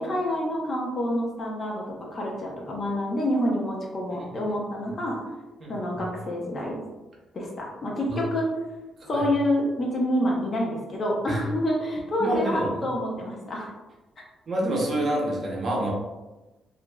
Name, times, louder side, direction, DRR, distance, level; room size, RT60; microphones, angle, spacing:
voice 1, 0.0-5.2 5.7-6.8 7.3-8.5 9.1-13.7 14.2-14.3, left 1 dB, 35° left, -2 dB, 0.6 m, -27 dB
voice 2, 5.6-6.0 8.1-8.2 9.0-9.3 11.3-11.4 12.2-12.7 14.5-15.9, right 1 dB, 40° right, -3 dB, 0.7 m, -28 dB
2.9 x 2.5 x 2.2 m, 1.1 s
cardioid pair, 130°, 0 cm